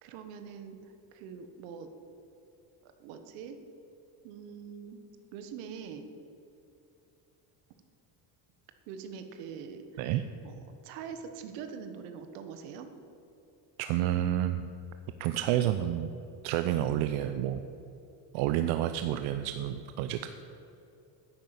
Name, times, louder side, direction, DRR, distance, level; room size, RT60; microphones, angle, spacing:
voice 1, 0.0-1.9 2.8-3.6 4.2-5.0 5.3-6.1 8.9-10.1 10.4-10.6 10.8-12.9, right 6 dB, 90° right, 8 dB, 1.5 m, -43 dB
voice 2, 13.8-14.7 15.2-16.1 16.4-17.6 18.3-20.3, right 12 dB, 75° right, 9 dB, 0.7 m, -29 dB
10.5 x 9.2 x 8.1 m, 2.8 s
cardioid pair, 145°, 49 cm